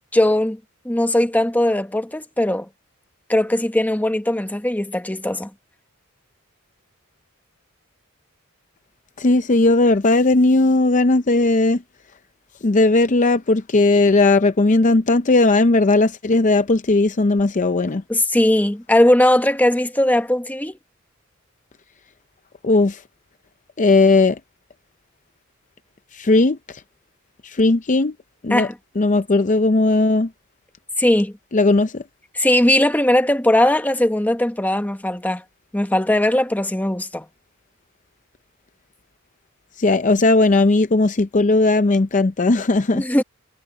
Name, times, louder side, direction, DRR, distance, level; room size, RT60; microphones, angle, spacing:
voice 1, 0.1-0.6 0.8-2.7 3.3-5.5 18.1-20.7 28.5-28.7 31.0-31.3 32.3-35.4 35.7-37.2 42.9-43.2, left 1 dB, 10° left, 1.0 m, -19 dB
voice 2, 9.2-11.8 12.6-18.0 22.6-23.0 23.8-24.4 26.1-26.8 27.4-28.1 28.4-28.7 29.0-30.3 31.5-32.0 39.8-43.2, left 2 dB, 35° left, 0.6 m, -17 dB
head